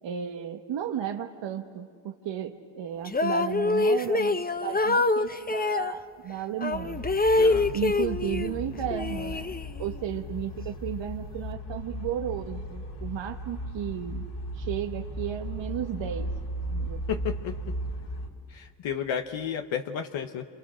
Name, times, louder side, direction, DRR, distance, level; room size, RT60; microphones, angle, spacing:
voice 1, 0.0-7.1 7.7-14.3 14.5-16.3 16.7-17.0, right 9 dB, 75° right, 4 dB, 1.2 m, -34 dB
sound 1, 3.1-5.9 6.6-8.6 8.9-10.0, left 2 dB, 20° left, 0.9 m, -25 dB
sound 2, 6.7-18.3, equal, 65° left, 3.3 m, -36 dB
voice 2, 7.4-7.7 17.1-17.6 18.5-20.5, left 8 dB, 85° left, 5 dB, 1.1 m, -32 dB
28.0 x 28.0 x 6.3 m, 2.3 s
supercardioid pair, 55°, 45 cm